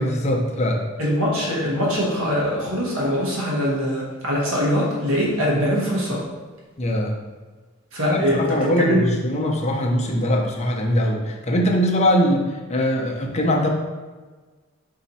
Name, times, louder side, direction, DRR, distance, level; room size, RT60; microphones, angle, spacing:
voice 1, 0.0-0.8 6.8-7.1 8.1-12.4 12.7-13.7, equal, 30° left, 0 dB, 0.6 m, -21 dB
voice 2, 1.0-6.2 7.9-9.1, equal, 75° right, -4 dB, 1.1 m, -22 dB
4.1 x 2.8 x 4.1 m, 1.4 s
head